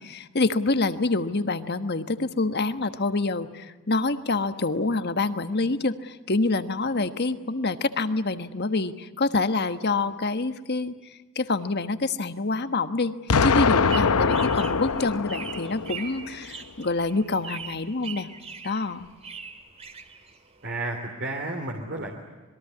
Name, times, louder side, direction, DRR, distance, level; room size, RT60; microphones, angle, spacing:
voice 1, 0.0-13.1 13.4-18.3 18.6-19.1, left 3 dB, 50° left, 10 dB, 1.3 m, -26 dB
Explosion, 13.3-16.3, left 5 dB, 90° left, 0.8 m, -23 dB
sound 1, 13.6-20.7, right 6 dB, 30° right, 2.3 m, -41 dB
voice 2, 20.6-22.1, right 2 dB, 50° right, 1 dB, 3.3 m, -32 dB
26.5 x 22.0 x 9.7 m, 1.2 s
head